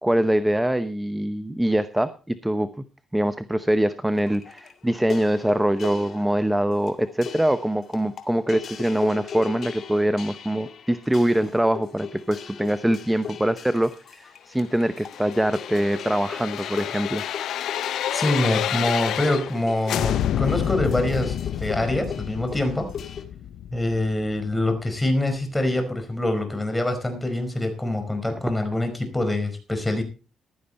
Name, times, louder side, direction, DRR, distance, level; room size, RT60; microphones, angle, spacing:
voice 1, 0.0-2.7 3.1-17.2, right 1 dB, 5° right, 12 dB, 0.8 m, -23 dB
sound 1, 4.1-23.2, left 7 dB, 55° left, 2.1 m, -39 dB
sound 2, 14.9-19.6 19.9-24.7 25.1-25.2, left 11 dB, 75° left, 0.7 m, -29 dB
voice 2, 18.1-22.9 23.7-30.0, left 1 dB, 10° left, 6 dB, 4.8 m, -25 dB
15.5 x 12.0 x 4.2 m, 0.34 s
cardioid pair, 90°, 0 cm